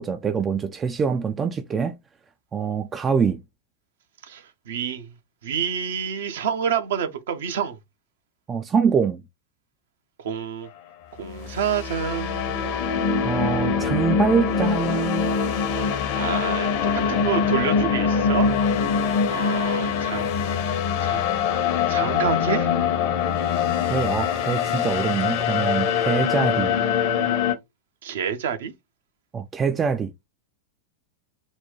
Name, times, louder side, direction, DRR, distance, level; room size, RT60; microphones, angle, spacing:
voice 1, 0.0-1.9 2.5-3.4 8.5-9.2 13.2-15.3 23.9-26.8 29.3-30.1, right 6 dB, 20° right, 0.3 m, -24 dB
voice 2, 4.3-5.1 5.4-7.8 10.2-10.7 11.2-12.8 16.1-16.7 17.1-18.5 19.3-20.3 21.0-21.2 21.9-22.7 28.0-28.7, right 8 dB, 60° right, 0.7 m, -28 dB
sound 1, 11.3-27.5, left 6 dB, 45° left, 0.7 m, -23 dB
4.1 x 2.3 x 3.7 m
figure-of-eight pair, 90°, 0 cm